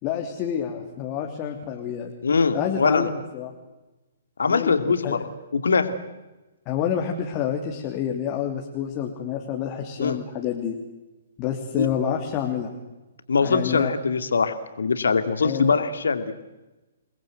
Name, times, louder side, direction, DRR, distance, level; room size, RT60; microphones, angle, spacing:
voice 1, 0.0-2.1 2.5-3.5 4.4-5.2 6.7-10.7 11.4-12.7 13.4-13.9 15.4-15.8, left 9 dB, 30° left, 2 dB, 3.1 m, -28 dB
voice 2, 2.2-3.1 4.4-5.2 5.5-5.9 10.0-10.2 11.8-11.9 13.3-16.3, left 5 dB, 70° left, 10 dB, 2.6 m, -22 dB
29.5 x 20.5 x 8.1 m, 1.1 s
figure-of-eight pair, 125°, 0 cm